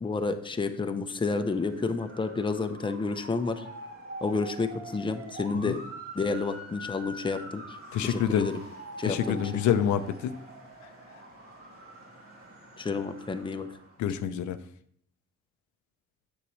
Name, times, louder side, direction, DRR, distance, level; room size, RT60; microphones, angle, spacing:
voice 1, 0.0-3.7 4.2-5.8 6.1-7.8 8.0-8.5 9.0-9.6 12.8-13.7, left 4 dB, 15° left, 7 dB, 0.6 m, -30 dB
Motor vehicle (road) / Siren, 1.4-14.1, right 1 dB, 50° right, 2.5 m, -45 dB
voice 2, 7.9-8.5 9.1-10.4 14.0-14.6, left 9 dB, 75° left, 11 dB, 0.5 m, -27 dB
7.2 x 6.8 x 3.1 m, 0.64 s
cardioid pair, 90°, 30 cm